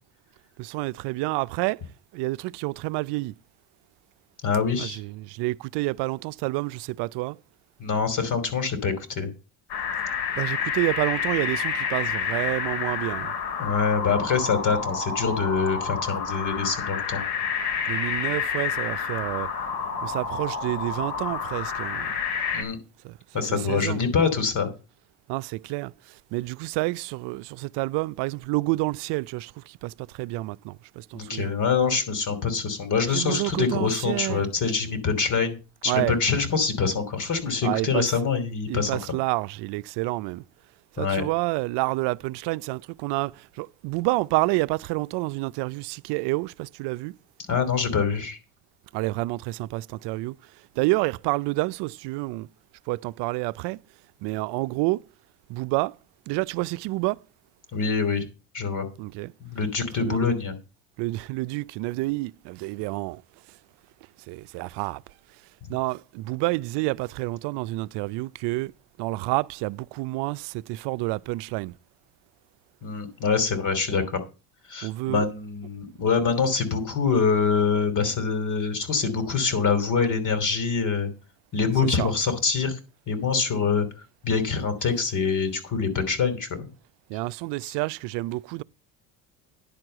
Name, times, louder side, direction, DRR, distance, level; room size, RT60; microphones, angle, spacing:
voice 1, 0.6-1.8 2.1-3.3 4.7-7.4 10.4-13.3 17.9-19.5 20.0-22.2 23.0-23.1 23.7-24.0 25.3-25.9 26.3-31.5 33.1-34.5 35.9-36.1 37.6-38.1 38.7-40.4 41.0-43.3 43.6-47.1 48.9-50.3 50.8-52.5 52.9-53.8 54.2-55.0 55.5-55.9 56.3-57.2 59.0-59.3 60.0-60.2 61.0-63.2 64.3-65.0 65.7-68.7 69.0-71.7 74.8-75.2 82.0-82.1 87.1-88.6, right 22 dB, 75° right, 0.5 m, -28 dB
voice 2, 4.4-5.0 7.8-9.3 13.6-17.2 22.5-22.8 23.3-24.7 31.1-35.6 35.8-38.9 41.0-41.2 47.5-48.4 57.7-58.2 58.5-58.9 59.4-60.6 72.8-74.2 74.7-81.1 81.5-82.8 83.1-83.9 84.2-86.7, left 5 dB, 45° left, 2.9 m, -25 dB
sound 1, 9.7-22.6, left 6 dB, 70° left, 3.1 m, -29 dB
10.5 x 4.6 x 7.7 m
supercardioid pair, 85°, 42 cm